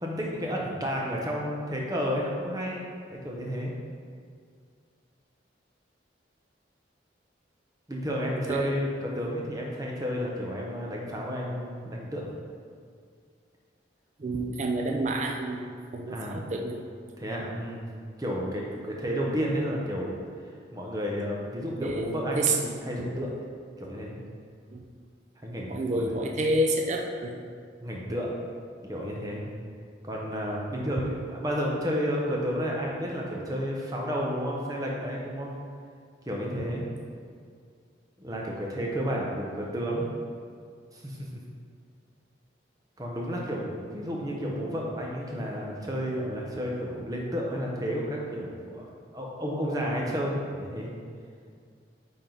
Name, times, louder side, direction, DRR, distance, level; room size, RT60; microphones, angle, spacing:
voice 1, 0.0-3.7 7.9-12.3 16.1-16.5 17.2-17.9 18.2-20.2 20.7-23.3 23.8-24.2 25.4-26.6 27.8-28.5 28.8-29.4 30.0-35.6 36.3-36.8 38.2-40.1 40.9-41.4 43.0-48.9 49.1-50.9, equal, 20° right, -2 dB, 0.9 m, -31 dB
voice 2, 14.2-16.9 21.8-22.0 22.4-22.6 24.7-24.9 25.7-27.4 36.5-36.6, right 2 dB, 40° right, 2 dB, 0.4 m, -29 dB
9.0 x 3.7 x 3.9 m, 2.2 s
head